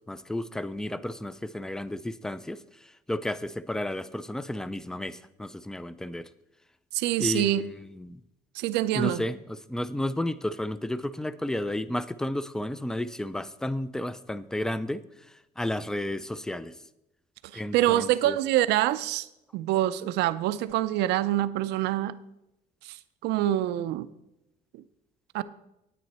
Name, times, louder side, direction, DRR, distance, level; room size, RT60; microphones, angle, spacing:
voice 1, 0.1-2.6 3.1-6.3 7.2-8.2 8.9-15.0 15.6-16.7 17.5-18.4, left 1 dB, 5° left, 16 dB, 0.4 m, -32 dB
voice 2, 6.9-7.6 8.5-9.2 17.5-19.3 19.5-22.2 22.8-23.0 23.2-24.1 25.3-25.4, right 14 dB, 85° right, 14 dB, 0.5 m, -25 dB
9.4 x 9.1 x 4.2 m, 0.88 s
cardioid pair, 110°, 17 cm